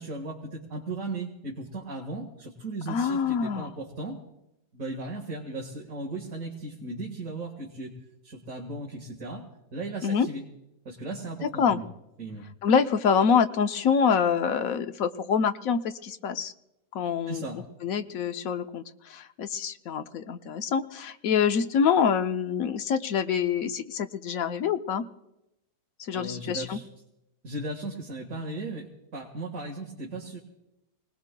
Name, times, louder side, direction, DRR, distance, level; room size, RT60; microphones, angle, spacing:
voice 1, 0.0-4.2 4.7-7.9 8.2-9.5 9.7-10.4 10.9-11.9 12.2-12.5 17.3-17.6 26.1-26.9 27.4-28.9 29.1-30.4, right 2 dB, 50° right, -1 dB, 2.0 m, -36 dB
voice 2, 2.9-3.7 10.0-10.3 11.4-11.8 12.6-16.5 16.9-25.0 26.0-26.8, left 6 dB, 65° left, 9 dB, 1.0 m, -26 dB
27.0 x 19.5 x 2.2 m, 0.89 s
omnidirectional pair, 1.8 m